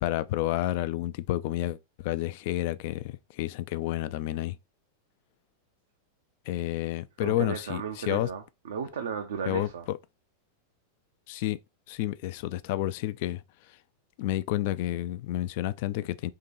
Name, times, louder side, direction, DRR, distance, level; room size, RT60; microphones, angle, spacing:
voice 1, 0.0-4.6 6.5-8.3 9.5-10.0 11.3-11.6 11.9-13.4 14.2-16.3, left 14 dB, 50° left, 0.3 m, -30 dB
voice 2, 7.2-9.9, right 6 dB, 60° right, 0.5 m, -35 dB
3.7 x 2.9 x 4.1 m
figure-of-eight pair, 90°, 0 cm